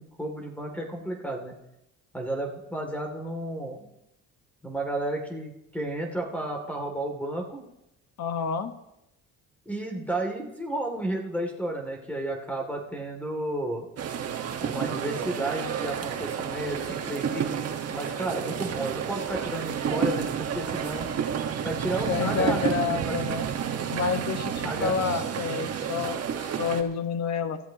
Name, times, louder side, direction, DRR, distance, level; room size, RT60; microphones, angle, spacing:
voice 1, 0.0-1.5 2.1-3.9 4.6-7.6 9.7-13.9 14.6-17.5 17.9-21.1 21.6-23.1 24.6-25.0 25.9-26.1, right 1 dB, 5° left, 2 dB, 2.6 m, -32 dB
voice 2, 8.2-8.7 22.1-23.5 23.9-27.6, left 6 dB, 60° left, 8 dB, 1.4 m, -29 dB
sound 1, 14.0-26.8, right 8 dB, 50° right, 1.4 m, -30 dB
25.5 x 14.0 x 3.0 m, 0.87 s
cardioid pair, 115°, 31 cm